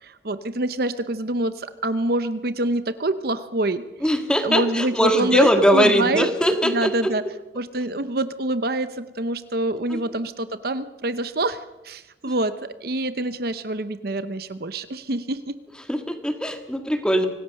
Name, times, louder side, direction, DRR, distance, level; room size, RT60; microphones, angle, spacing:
voice 1, 0.0-3.8 4.4-6.3 6.6-7.2 7.5-12.5 12.8-15.5, right 2 dB, 55° right, 12 dB, 0.8 m, -26 dB
voice 2, 4.0-7.1 9.9-10.0 15.9-17.3, equal, 5° left, 6 dB, 1.7 m, -20 dB
25.0 x 18.0 x 6.5 m, 1.0 s
head